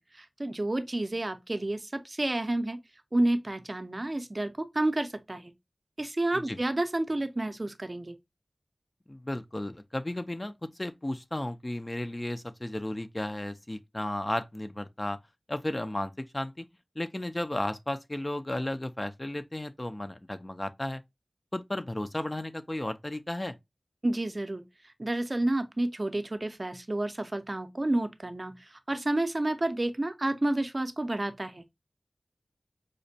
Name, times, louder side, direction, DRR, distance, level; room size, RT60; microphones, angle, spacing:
voice 1, 0.0-2.8 3.1-5.5 6.0-8.1 24.0-24.6 25.0-31.8, right 1 dB, 40° right, 0.5 m, -30 dB
voice 2, 9.1-15.2 15.5-16.7 17.0-21.0 21.5-23.6, left 1 dB, 30° left, 0.3 m, -34 dB
5.0 x 2.1 x 2.6 m
wide cardioid pair, 65°, 0 cm